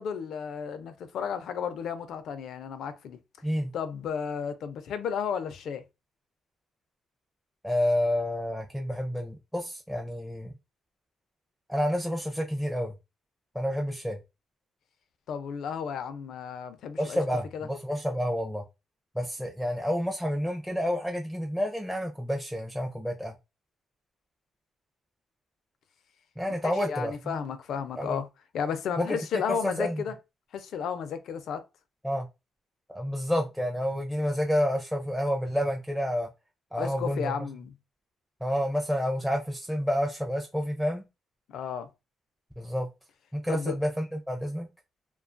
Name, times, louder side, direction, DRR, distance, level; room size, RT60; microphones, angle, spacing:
voice 1, 0.0-3.2 3.7-5.8 15.3-17.2 17.5-17.7 26.6-28.3 28.5-30.2 30.5-31.6 36.8-37.7 41.5-41.9 43.5-43.8, left 7 dB, 70° left, 0.5 m, -33 dB
voice 2, 7.6-10.5 11.7-12.9 13.5-14.2 17.0-18.6 19.2-23.4 26.4-27.3 28.0-28.2 29.0-29.2 29.5-30.0 32.0-32.3 32.9-36.3 36.7-37.3 38.4-41.0 42.6-42.9 43.3-44.7, equal, ahead, 0.5 m, -29 dB
2.4 x 2.3 x 2.5 m
cardioid pair, 90°, 0 cm